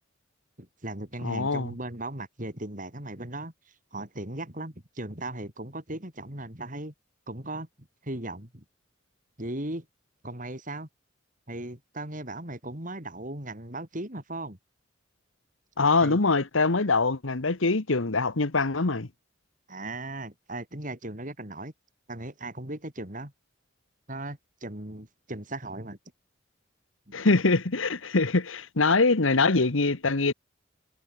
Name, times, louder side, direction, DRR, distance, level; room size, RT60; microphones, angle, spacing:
voice 1, 0.6-3.5 3.9-6.9 7.3-8.6 9.4-9.9 10.2-10.9 11.5-14.6 16.0-16.2 19.7-21.7 22.1-23.3 24.1-26.0, right 1 dB, 40° right, 4.7 m, -37 dB
voice 2, 1.2-1.7 15.8-19.1 27.1-30.3, left 3 dB, 80° left, 1.3 m, -23 dB
head